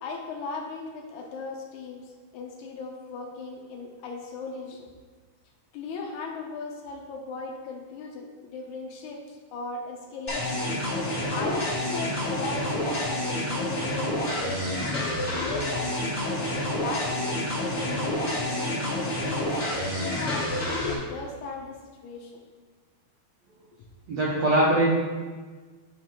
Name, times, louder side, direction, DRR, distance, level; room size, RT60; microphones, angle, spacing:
voice 1, 0.0-4.9 5.7-10.6 11.3-14.8 15.3-16.0 16.8-17.4 17.7-19.6 20.0-22.4, left 4 dB, 80° left, 0 dB, 1.7 m, -37 dB
sound 1, 10.3-20.9, left 1 dB, 55° left, 0.7 m, -28 dB
voice 2, 24.1-24.9, right 1 dB, 70° right, -6 dB, 1.6 m, -21 dB
8.9 x 3.5 x 4.5 m, 1.4 s
omnidirectional pair, 4.3 m